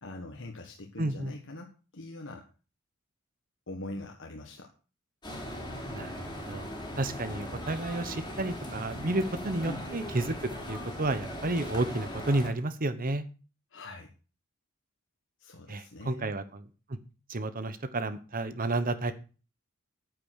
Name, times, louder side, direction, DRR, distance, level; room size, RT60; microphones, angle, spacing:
voice 1, 0.0-2.4 3.7-4.7 9.7-9.9 13.7-14.1 15.4-16.3, left 2 dB, 60° left, 2 dB, 1.6 m, -42 dB
voice 2, 1.0-1.3 5.9-6.7 6.9-10.3 10.7-13.2 15.7-16.6 17.3-19.1, right 2 dB, 40° right, 11 dB, 1.0 m, -31 dB
sound 1, 5.2-12.5, equal, 20° left, 3.2 m, -39 dB
9.4 x 8.6 x 6.3 m, 0.35 s
head